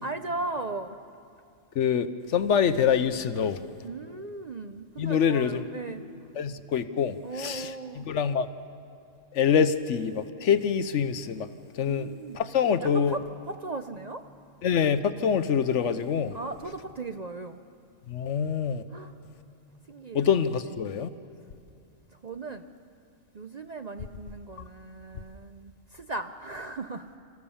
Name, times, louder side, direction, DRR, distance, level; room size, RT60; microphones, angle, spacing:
voice 1, 0.0-1.0 3.8-6.0 7.2-8.1 11.9-13.2 13.5-14.2 16.3-17.6 18.9-19.1 19.9-20.3 22.1-22.7 23.3-27.2, right 3 dB, 45° right, 7 dB, 0.6 m, -37 dB
voice 2, 1.7-3.6 5.0-5.6 6.4-8.5 9.3-11.5 11.7-13.2 14.6-16.4 18.1-18.8 20.1-21.1, left 7 dB, 70° left, 12 dB, 1.1 m, -25 dB
28.0 x 14.5 x 7.1 m, 2.4 s
omnidirectional pair, 1.3 m